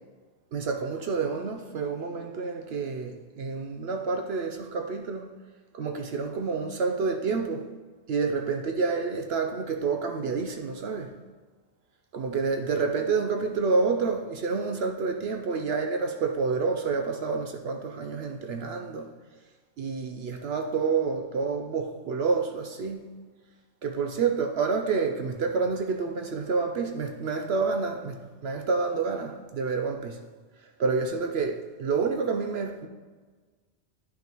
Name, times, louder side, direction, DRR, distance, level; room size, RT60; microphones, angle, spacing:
voice 1, 0.5-5.3 5.7-7.7 8.1-11.2 12.1-19.1 19.8-23.1 23.8-30.2 30.8-32.9, right 4 dB, 65° right, 0.8 m, -28 dB
10.0 x 5.6 x 3.0 m
omnidirectional pair, 1.2 m